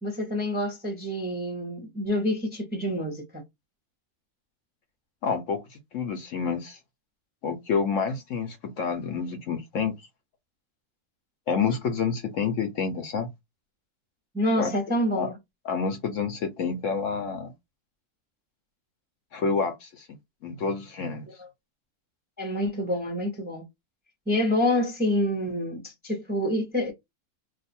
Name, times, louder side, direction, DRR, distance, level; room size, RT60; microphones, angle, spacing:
voice 1, 0.0-3.4 14.3-15.4 21.4-21.5 22.4-23.6 24.3-26.9, left 1 dB, 10° right, 0.6 m, -27 dB
voice 2, 5.2-6.8 7.4-9.9 11.5-13.3 14.6-14.7 15.1-15.3 15.6-17.5 19.3-20.2 20.4-21.2, left 5 dB, 65° left, 0.9 m, -28 dB
2.6 x 2.4 x 4.1 m
omnidirectional pair, 1.6 m